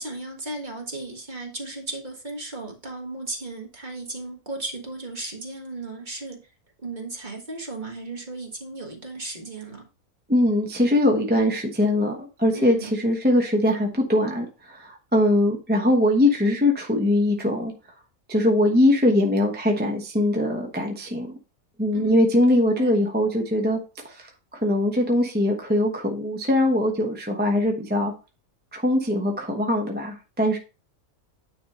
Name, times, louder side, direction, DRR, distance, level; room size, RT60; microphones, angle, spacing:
voice 1, 0.0-6.4 6.8-9.8 12.5-12.9 21.9-22.9, right 2 dB, 35° right, 1 dB, 1.6 m, -35 dB
voice 2, 10.3-17.7 18.3-21.3 21.8-23.8 24.0-28.1 28.7-30.6, left 1 dB, 10° right, 1 dB, 0.9 m, -22 dB
9.7 x 3.6 x 4.2 m, 0.31 s
omnidirectional pair, 1.5 m